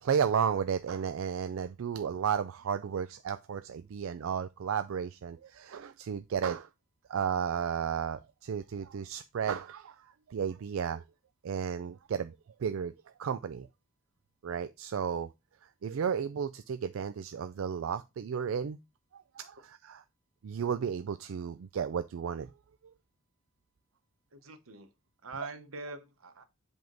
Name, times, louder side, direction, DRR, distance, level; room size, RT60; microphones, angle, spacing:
voice 1, 0.0-6.7 7.1-11.0 11.4-12.3 12.6-12.9 13.2-13.7 14.4-15.3 15.8-18.8 19.1-20.0 20.4-22.5, right 7 dB, 70° right, 0.4 m, -33 dB
voice 2, 24.3-24.9 25.2-26.4, right 3 dB, 90° right, 1.0 m, -44 dB
7.7 x 3.6 x 3.8 m
head